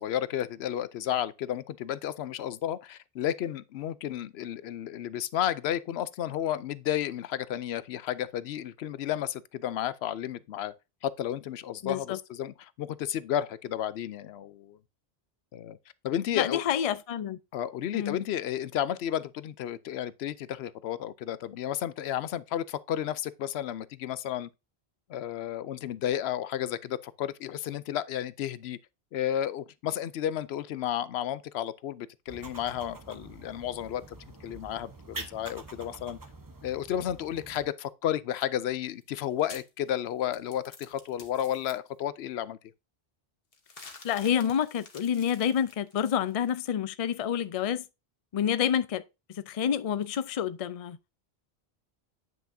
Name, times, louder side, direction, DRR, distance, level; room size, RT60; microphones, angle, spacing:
voice 1, 0.0-10.7 11.0-14.8 15.5-15.8 16.0-16.6 17.5-24.5 25.1-28.8 29.1-36.2 36.6-42.6, left 11 dB, 85° left, 0.8 m, -32 dB
voice 2, 11.8-12.2 16.3-17.4 17.9-18.2 44.0-47.8 48.3-49.0 49.3-51.0, left 9 dB, 50° left, 0.5 m, -28 dB
sound 1, 32.3-37.7, right 2 dB, 20° right, 0.8 m, -46 dB
sound 2, 38.9-41.7 43.5-46.5, left 4 dB, 65° left, 1.4 m, -50 dB
9.2 x 5.8 x 2.6 m
omnidirectional pair, 1.0 m